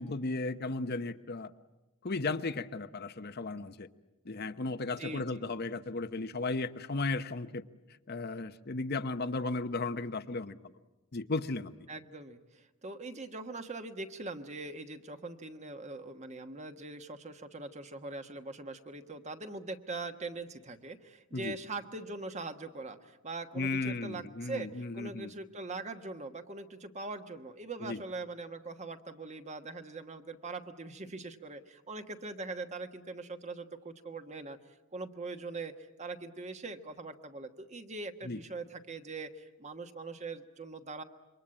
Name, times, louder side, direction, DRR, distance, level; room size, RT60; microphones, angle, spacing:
voice 1, 0.0-1.5 2.0-3.9 4.2-7.6 8.1-10.6 11.1-11.7 21.3-21.6 23.5-25.3 27.8-28.0 38.2-38.4, left 3 dB, 50° left, 10 dB, 0.9 m, -35 dB
voice 2, 5.0-5.5 11.9-34.6 34.9-35.7 36.0-41.0, right 3 dB, 35° right, 8 dB, 1.3 m, -42 dB
27.5 x 24.0 x 8.8 m, 1.0 s
head